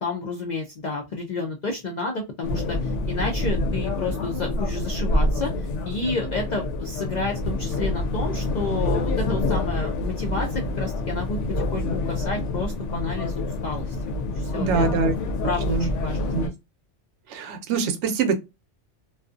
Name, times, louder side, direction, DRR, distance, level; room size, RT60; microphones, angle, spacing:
voice 1, 0.0-14.9 15.4-16.5, left 3 dB, 55° left, 0.5 m, -31 dB
sound 1, 2.4-16.5, left 2 dB, 80° left, 0.9 m, -27 dB
voice 2, 14.5-15.1 15.7-15.9 16.3-16.5 17.3-18.4, right 5 dB, 80° right, 0.9 m, -24 dB
2.5 x 2.4 x 2.4 m
omnidirectional pair, 1.2 m